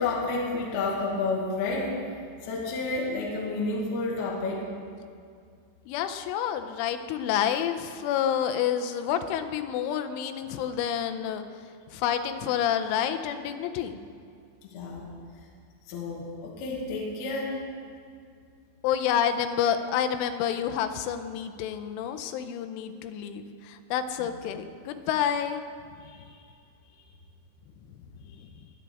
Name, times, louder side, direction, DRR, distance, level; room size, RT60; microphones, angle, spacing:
voice 1, 0.0-1.9 2.4-4.6 14.6-15.1 15.9-17.6 24.2-24.3 26.0-26.4, left 3 dB, 65° left, -3 dB, 3.0 m, -30 dB
voice 2, 5.9-11.4 11.9-14.0 18.8-25.6, left 9 dB, 85° left, 8 dB, 3.2 m, -28 dB
22.5 x 8.4 x 3.5 m, 2.3 s
omnidirectional pair, 5.5 m